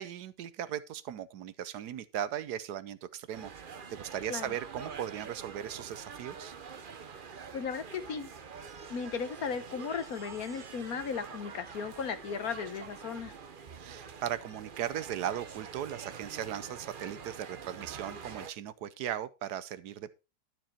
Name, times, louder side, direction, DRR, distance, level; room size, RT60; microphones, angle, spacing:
voice 1, 0.0-3.5 3.9-6.6 13.8-20.1, right 10 dB, 75° right, 1.3 m, -38 dB
sound 1, 3.3-18.5, right 6 dB, 40° right, 0.8 m, -46 dB
voice 2, 7.5-8.3 8.9-13.3, left 6 dB, 65° left, 1.4 m, -36 dB
12.0 x 7.5 x 4.3 m
omnidirectional pair, 1.8 m